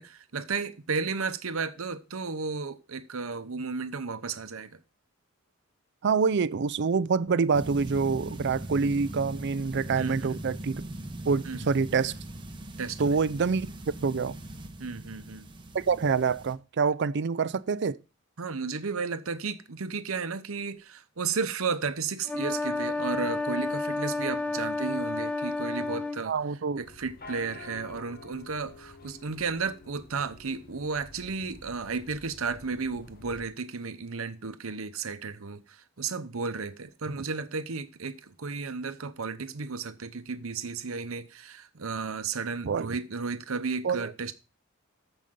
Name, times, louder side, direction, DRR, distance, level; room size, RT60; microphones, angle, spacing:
voice 1, 0.0-4.8 9.9-10.4 11.4-11.7 12.8-13.2 14.8-15.5 18.4-26.3 26.8-44.3, right 4 dB, 75° right, 0.9 m, -33 dB
voice 2, 6.0-10.8 11.3-12.1 13.0-14.4 15.7-18.0 26.3-26.8 42.7-42.9 43.8-44.1, right 5 dB, 55° right, 0.5 m, -26 dB
sound 1, 7.5-16.5, right 1 dB, 20° right, 1.0 m, -40 dB
sound 2, 22.2-26.2, left 2 dB, 5° left, 1.0 m, -31 dB
sound 3, 26.8-33.5, left 2 dB, 45° left, 1.1 m, -49 dB
14.0 x 5.3 x 3.7 m
head